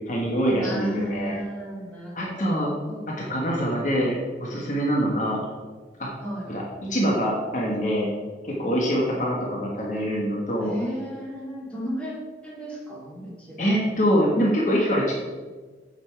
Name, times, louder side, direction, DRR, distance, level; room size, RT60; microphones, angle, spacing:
voice 1, 0.1-1.4 2.1-2.7 3.1-5.4 6.0-6.1 6.5-8.1 8.4-10.7 13.6-15.1, equal, 45° left, -3 dB, 1.4 m, -24 dB
voice 2, 0.6-3.4 6.2-6.5 10.6-12.1 12.4-13.9, equal, 5° left, -6 dB, 2.4 m, -34 dB
8.8 x 5.8 x 4.7 m, 1.4 s
head